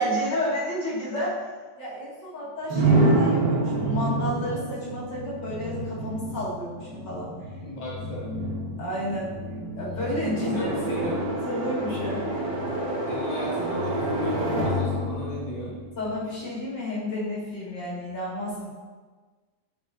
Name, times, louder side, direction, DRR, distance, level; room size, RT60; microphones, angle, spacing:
voice 1, 0.0-1.4 1.8-7.3 8.8-9.3 9.8-10.7 11.0-11.1 11.4-12.3 16.0-18.7, equal, 70° left, -8 dB, 2.7 m, -31 dB
sound 1, 2.7-16.5, right 2 dB, 65° right, 1.9 m, -28 dB
voice 2, 7.6-8.4 10.4-11.2 13.1-15.8, equal, 20° left, -5 dB, 1.2 m, -35 dB
8.8 x 4.9 x 2.6 m, 1.4 s
omnidirectional pair, 2.0 m